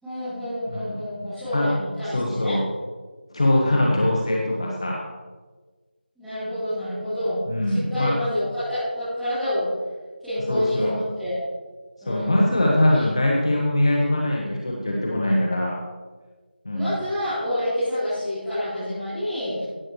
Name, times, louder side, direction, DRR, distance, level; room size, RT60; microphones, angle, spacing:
voice 1, 0.0-2.6 3.6-4.0 6.2-9.7 10.2-11.4 12.0-12.5 12.9-13.0 16.7-19.6, left 1 dB, ahead, -20 dB, 3.5 m, -28 dB
voice 2, 0.7-1.0 1.5-1.7 2.0-2.6 3.3-5.0 7.5-8.1 10.5-10.9 12.1-15.8 16.6-16.9, left 1 dB, 30° left, -2 dB, 1.4 m, -22 dB
17.0 x 11.0 x 3.2 m, 1.4 s
figure-of-eight pair, 175°, 6 cm